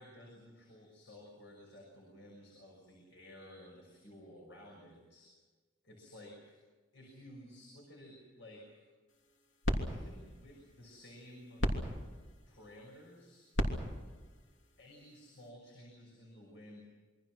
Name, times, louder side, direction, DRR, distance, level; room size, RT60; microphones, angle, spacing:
voice 1, 0.0-5.3 5.8-6.5 6.9-8.8 9.9-11.7 12.5-13.5 14.8-16.8, left 1 dB, 65° left, -1 dB, 6.4 m, -54 dB
sound 1, 9.1-15.5, equal, 80° left, 3.1 m, -39 dB
27.5 x 23.5 x 6.2 m, 1.4 s
head